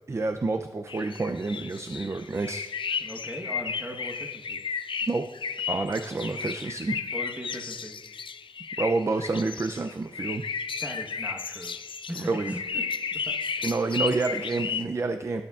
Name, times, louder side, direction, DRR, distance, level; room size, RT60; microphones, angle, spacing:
voice 1, 0.1-2.6 5.0-5.2 5.7-7.0 8.8-10.4 12.2-12.5 13.6-15.4, right 3 dB, 35° right, 7 dB, 0.4 m, -28 dB
sound 1, 0.9-14.8, left 6 dB, 75° left, 0.4 m, -34 dB
voice 2, 3.0-4.6 6.9-7.9 10.8-11.7 12.1-12.8 13.1-13.8, equal, 15° right, 1 dB, 1.1 m, -39 dB
17.0 x 6.9 x 2.4 m, 1.2 s
wide cardioid pair, 110°, 9 cm